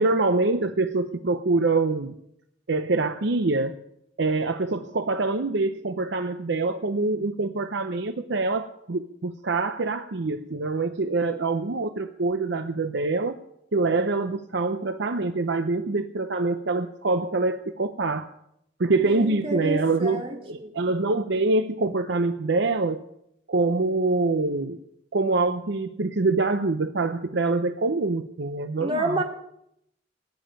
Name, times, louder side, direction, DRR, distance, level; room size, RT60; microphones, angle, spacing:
voice 1, 0.0-2.2 2.7-3.7 4.2-13.4 13.7-18.3 18.8-20.2 20.5-23.0 23.5-24.8 25.1-29.2, right 3 dB, 65° right, 9 dB, 0.7 m, -25 dB
voice 2, 19.0-20.7 28.8-29.2, right 1 dB, 30° right, 1 dB, 2.5 m, -29 dB
19.0 x 7.2 x 8.8 m, 0.76 s
head